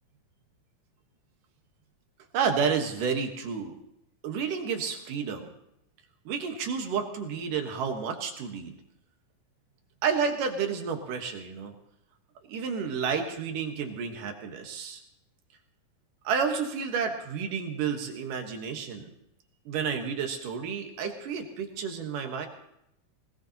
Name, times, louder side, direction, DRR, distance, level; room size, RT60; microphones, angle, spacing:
voice 1, 2.3-3.8 4.2-5.5 6.3-8.7 10.0-11.7 12.5-15.0 16.2-19.1 19.7-22.5, right 6 dB, 80° right, 4 dB, 3.0 m, -30 dB
20.0 x 18.5 x 2.9 m, 0.78 s
omnidirectional pair, 3.8 m